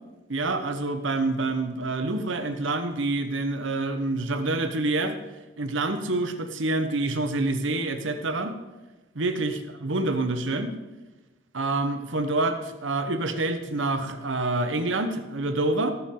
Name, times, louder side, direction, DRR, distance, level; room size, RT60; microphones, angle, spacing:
voice 1, 0.3-5.2 5.6-8.5 9.2-10.7 11.5-15.9, right 2 dB, 85° right, 8 dB, 1.1 m, -27 dB
18.0 x 7.2 x 3.9 m, 1.1 s
head